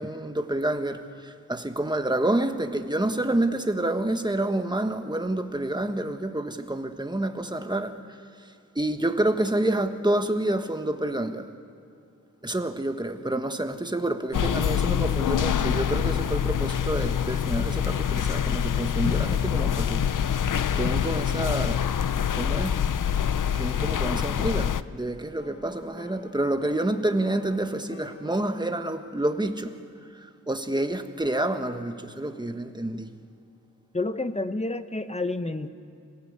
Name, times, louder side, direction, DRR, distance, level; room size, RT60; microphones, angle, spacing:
voice 1, 0.0-8.0 8.7-11.5 12.4-20.1 20.7-21.9 22.3-22.8 23.5-29.8 30.5-33.1, right 1 dB, 15° right, 1.3 m, -28 dB
sound 1, 14.3-24.8, left 8 dB, 85° left, 0.6 m, -25 dB
sound 2, 23.2-29.6, left 1 dB, 40° left, 4.7 m, -49 dB
voice 2, 33.9-35.7, left 2 dB, 20° left, 1.0 m, -29 dB
27.0 x 17.5 x 8.2 m
wide cardioid pair, 75°, 31 cm